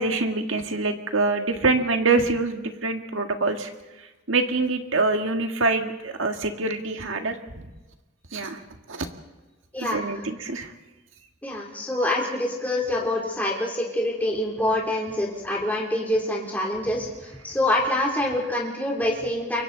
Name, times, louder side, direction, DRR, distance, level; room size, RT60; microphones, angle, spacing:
voice 1, 0.0-3.7 4.3-7.3 8.3-8.6 8.9-9.1 9.8-10.7, right 3 dB, 90° right, 5 dB, 1.8 m, -25 dB
voice 2, 11.4-19.6, left 1 dB, 10° left, -3 dB, 3.1 m, -26 dB
29.0 x 24.0 x 4.0 m, 1.1 s
head